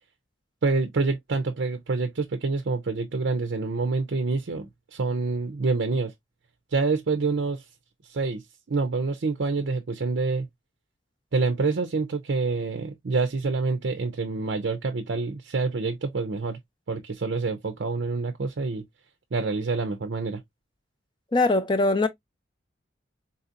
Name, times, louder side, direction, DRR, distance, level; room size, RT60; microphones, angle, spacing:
voice 1, 0.6-6.1 6.7-7.6 8.0-8.4 8.7-10.5 11.3-16.6 16.9-18.8 19.3-20.4, right 4 dB, 60° right, 0.5 m, -27 dB
voice 2, 21.3-22.1, left 2 dB, 25° left, 0.5 m, -21 dB
4.0 x 2.8 x 2.4 m
head